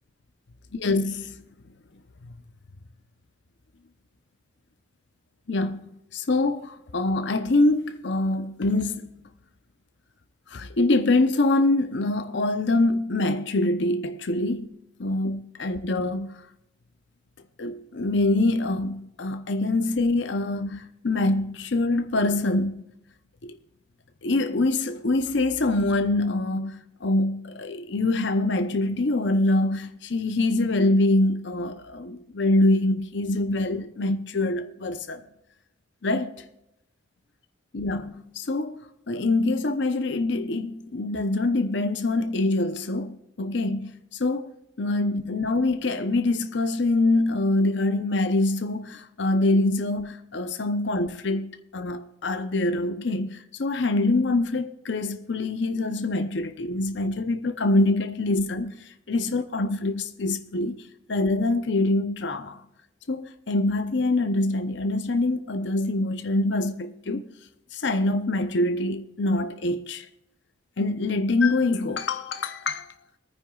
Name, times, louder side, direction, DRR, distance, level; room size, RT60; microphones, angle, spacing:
voice 1, 0.7-1.3 2.2-2.3 5.5-5.8 6.1-9.1 10.5-14.7 15.0-16.4 17.6-22.8 23.4-23.6 24.2-35.2 36.0-36.4 37.7-43.9 44.2-44.5 44.8-62.6 63.1-67.2 67.7-70.1 70.8-72.9, left 2 dB, 60° left, 0.7 m, -25 dB
23.0 x 9.5 x 2.4 m
head